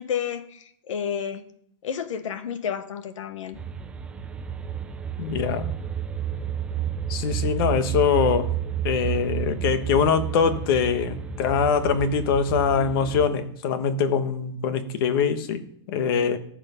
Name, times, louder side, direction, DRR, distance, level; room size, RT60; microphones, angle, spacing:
voice 1, 0.0-1.4 1.8-3.6, left 8 dB, 80° left, 12 dB, 1.2 m, -31 dB
sound 1, 3.5-13.3, right 9 dB, 5° right, 0.5 m, -31 dB
voice 2, 5.2-5.7 7.1-8.5 8.8-15.6 15.9-16.4, left 6 dB, 45° left, 11 dB, 1.2 m, -23 dB
14.0 x 5.9 x 5.6 m, 0.68 s
supercardioid pair, 160°, 16 cm